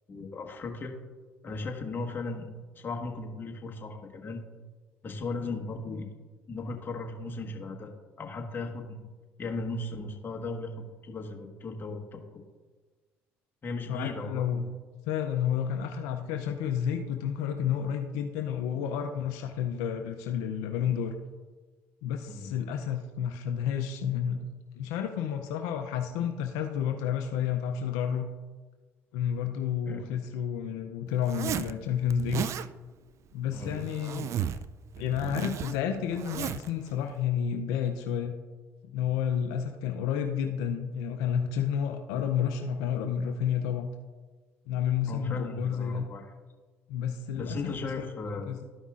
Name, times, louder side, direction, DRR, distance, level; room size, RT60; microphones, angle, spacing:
voice 1, 0.1-0.9 1.4-4.5 5.0-6.1 6.5-7.9 8.2-9.0 9.4-12.4 13.6-14.7 22.3-22.5 29.8-30.1 33.5-33.9 45.1-46.3 47.3-48.6, left 3 dB, 35° left, 1 dB, 1.4 m, -37 dB
voice 2, 13.9-14.6 15.1-21.1 22.0-24.5 24.7-28.3 29.1-32.5 33.3-34.3 35.0-38.3 38.8-43.9 44.7-46.0 46.9-47.6 48.0-48.1 48.5-48.6, left 8 dB, 80° left, 5 dB, 0.5 m, -30 dB
Zipper (clothing), 31.2-31.7 32.1-32.7 33.5-34.7 34.9-36.7, right 9 dB, 55° right, 0.4 m, -34 dB
13.0 x 5.4 x 2.5 m, 1.3 s
supercardioid pair, 65°, 6 cm